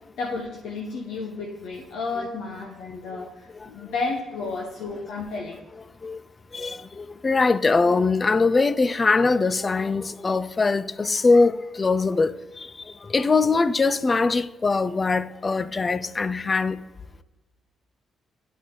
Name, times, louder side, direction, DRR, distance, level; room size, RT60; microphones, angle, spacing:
voice 1, 0.2-5.6, left 3 dB, 85° left, 0.8 m, -32 dB
voice 2, 6.5-16.8, left 3 dB, 30° left, 0.3 m, -22 dB
10.0 x 4.0 x 3.8 m
cardioid pair, 90°, 0 cm